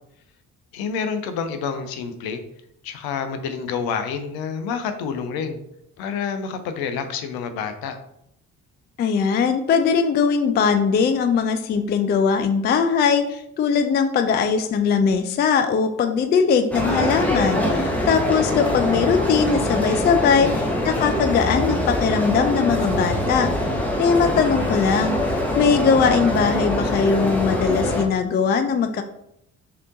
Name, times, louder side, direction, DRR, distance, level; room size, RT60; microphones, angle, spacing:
voice 1, 0.7-2.4 2.8-5.6 6.0-8.0 20.4-20.5, left 6 dB, 55° left, 8 dB, 0.7 m, -28 dB
voice 2, 9.0-23.5 24.0-29.0, left 6 dB, 25° left, 8 dB, 0.4 m, -20 dB
sound 1, 16.7-28.0, left 1 dB, 5° left, 1.1 m, -23 dB
6.4 x 2.8 x 2.6 m, 0.76 s
figure-of-eight pair, 45°, 43 cm